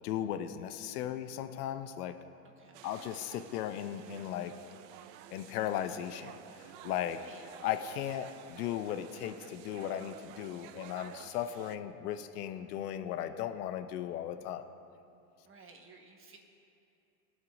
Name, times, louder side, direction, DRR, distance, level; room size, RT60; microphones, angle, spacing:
voice 1, 0.0-2.1 2.8-4.5 5.3-6.3 6.6-7.2 7.6-14.7, left 10 dB, 70° left, 9 dB, 0.8 m, -36 dB
voice 2, 2.6-2.9 7.1-7.5 15.4-16.4, right 4 dB, 25° right, 2 dB, 1.5 m, -55 dB
sound 1, 2.7-11.8, right 11 dB, 50° right, 0.5 m, -52 dB
20.5 x 8.0 x 2.7 m, 2.6 s
hypercardioid pair, 100°, 48 cm